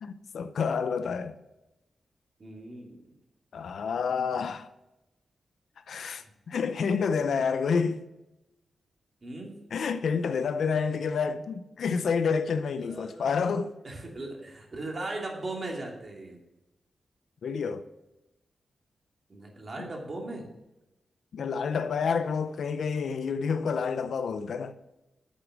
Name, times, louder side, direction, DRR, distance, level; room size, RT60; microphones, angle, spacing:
voice 1, 0.0-1.4 3.5-4.7 5.9-8.0 9.7-13.7 17.4-17.8 21.3-24.7, left 5 dB, 75° left, 0.6 m, -29 dB
voice 2, 2.4-3.0 9.2-9.6 12.8-13.3 13.8-16.4 19.3-20.4, right 2 dB, 35° right, 2.5 m, -38 dB
9.5 x 8.3 x 6.3 m
wide cardioid pair, 170°, 0 cm